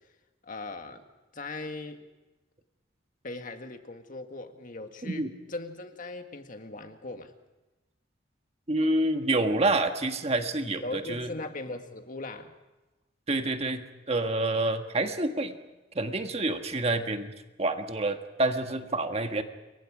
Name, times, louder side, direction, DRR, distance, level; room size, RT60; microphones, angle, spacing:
voice 1, 0.4-1.0 1.3-2.0 3.2-7.3 10.8-12.5, left 2 dB, 45° left, 6 dB, 1.8 m, -39 dB
voice 2, 8.7-11.3 13.3-15.5 15.9-17.3 17.6-19.4, right 2 dB, 35° right, 6 dB, 1.5 m, -28 dB
28.5 x 23.0 x 5.0 m, 1.1 s
head